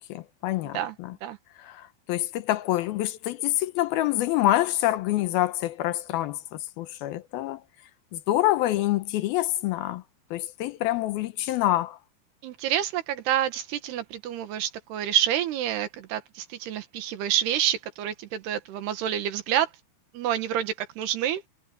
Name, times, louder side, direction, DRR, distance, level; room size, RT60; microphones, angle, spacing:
voice 1, 0.0-1.2 1.6-7.6 8.1-10.0 10.3-12.0, left 15 dB, 75° left, 2.6 m, -26 dB
voice 2, 12.4-19.7 20.1-21.4, right 11 dB, 90° right, 3.6 m, -28 dB
omnidirectional pair, 4.5 m